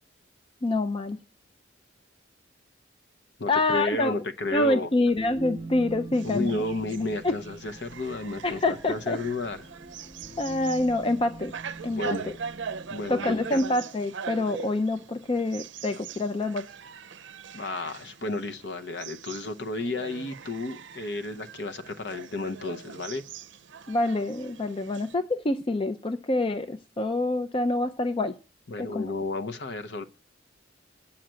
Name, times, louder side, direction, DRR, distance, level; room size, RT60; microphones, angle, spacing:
voice 1, 0.6-1.2 3.5-4.1 4.5-6.6 7.2-7.3 8.4-9.2 10.4-11.5 11.8-12.3 13.1-16.7 23.9-28.3 28.8-29.0, left 2 dB, 30° left, 0.4 m, -26 dB
voice 2, 3.4-4.9 6.2-9.6 11.9-12.3 12.9-13.6 17.5-23.2 28.7-30.0, left 2 dB, 60° left, 0.8 m, -32 dB
sound 1, 5.1-13.7, right 2 dB, 25° right, 0.9 m, -44 dB
sound 2, 6.1-25.1, right 6 dB, 70° right, 0.6 m, -42 dB
9.1 x 5.7 x 7.5 m
head